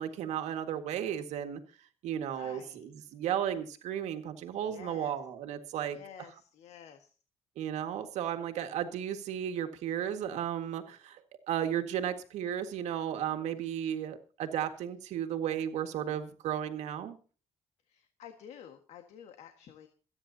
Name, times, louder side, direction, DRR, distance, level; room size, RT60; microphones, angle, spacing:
voice 1, 0.0-1.6 2.0-6.0 7.6-11.2 11.5-17.2, right 10 dB, 80° right, 7 dB, 1.9 m, -34 dB
voice 2, 2.3-3.1 4.7-5.2 5.9-7.1 17.9-19.9, left 9 dB, 70° left, 6 dB, 1.7 m, -51 dB
27.5 x 9.8 x 2.8 m, 0.38 s
cardioid pair, 160°, 12 cm